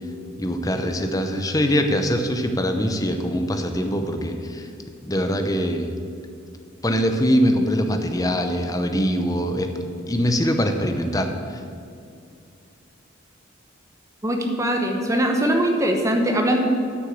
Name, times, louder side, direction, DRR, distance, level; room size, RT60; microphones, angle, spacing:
voice 1, 0.4-4.7 5.0-5.9 6.8-9.7 10.1-11.6, equal, 15° left, 6 dB, 0.7 m, -23 dB
voice 2, 14.2-16.6, right 1 dB, 15° right, 2 dB, 1.0 m, -21 dB
9.7 x 6.3 x 7.9 m, 2.5 s
head